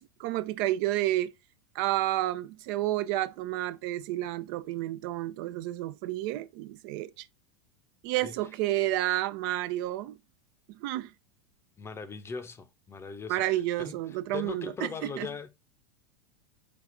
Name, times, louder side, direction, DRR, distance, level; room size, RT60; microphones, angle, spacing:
voice 1, 0.0-1.3 1.7-7.3 8.0-10.2 10.8-11.1 13.3-15.3, right 15 dB, 55° right, 0.4 m, -30 dB
voice 2, 11.8-14.0 14.3-15.5, left 5 dB, 20° left, 0.7 m, -39 dB
5.2 x 2.4 x 4.1 m
hypercardioid pair, 95°, 14 cm